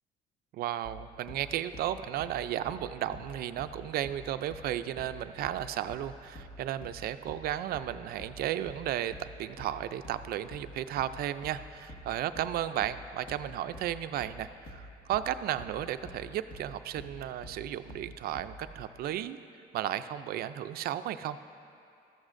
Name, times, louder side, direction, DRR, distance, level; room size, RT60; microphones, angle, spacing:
voice 1, 0.5-19.4 19.7-21.4, right 11 dB, 65° right, 12 dB, 0.4 m, -34 dB
sound 1, 0.8-18.7, equal, 55° left, 1.6 m, -49 dB
13.5 x 13.0 x 2.5 m, 2.5 s
cardioid pair, 110°, 17 cm